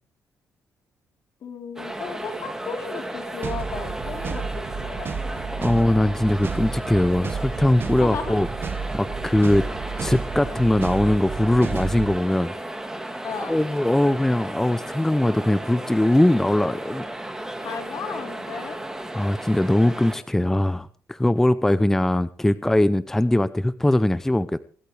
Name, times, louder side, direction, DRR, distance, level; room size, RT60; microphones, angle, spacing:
voice 1, 1.4-5.5 8.0-8.4 9.4-9.5 13.2-13.6 17.6-18.8, left 5 dB, 60° left, 4 dB, 3.7 m, -35 dB
sound 1, 1.8-20.2, right 1 dB, 10° right, 2.3 m, -34 dB
sound 2, 3.4-12.2, right 5 dB, 40° right, 1.1 m, -32 dB
voice 2, 5.6-8.5 8.9-9.6 10.0-12.5 12.9-17.0 19.1-24.7, left 1 dB, 5° left, 14 dB, 0.6 m, -21 dB
23.5 x 13.0 x 3.3 m, 0.43 s
cardioid pair, 110°, 6 cm